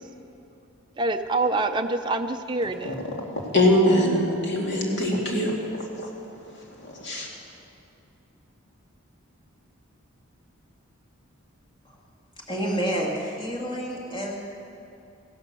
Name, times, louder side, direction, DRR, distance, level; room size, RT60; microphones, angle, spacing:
voice 1, 1.0-3.0, right 2 dB, 20° right, 5 dB, 0.5 m, -26 dB
voice 2, 3.5-5.5 6.8-7.3, left 1 dB, 50° left, -1 dB, 2.5 m, -22 dB
voice 3, 12.5-14.3, right 1 dB, 20° left, -2 dB, 2.0 m, -29 dB
15.5 x 11.5 x 6.7 m, 2.6 s
head